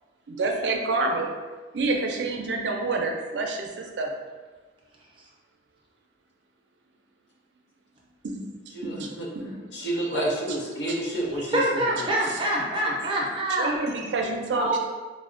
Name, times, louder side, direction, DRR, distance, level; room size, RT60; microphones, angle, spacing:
voice 1, 0.3-1.3 1.7-4.1 8.2-9.7 10.7-11.2 12.3-12.4 12.7-12.8 13.6-14.8, right 3 dB, 80° right, 2 dB, 0.5 m, -29 dB
voice 2, 8.7-9.3 9.7-12.1, right 1 dB, 80° left, -3 dB, 0.7 m, -30 dB
voice 3, 11.5-13.7 14.6-14.8, right 1 dB, 30° right, -4 dB, 0.6 m, -25 dB
4.2 x 2.1 x 2.4 m, 1.3 s
head